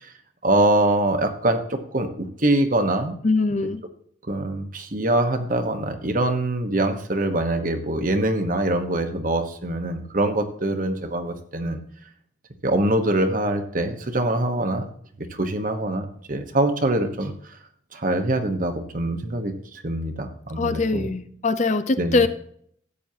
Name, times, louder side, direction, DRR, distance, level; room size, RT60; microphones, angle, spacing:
voice 1, 0.4-3.2 4.3-11.8 12.6-14.8 15.2-17.3 17.9-21.1 22.0-22.2, right 1 dB, 45° right, 7 dB, 1.1 m, -24 dB
voice 2, 3.2-3.8 20.6-22.3, left 3 dB, 35° left, 11 dB, 0.5 m, -22 dB
13.5 x 9.0 x 2.8 m, 0.62 s
head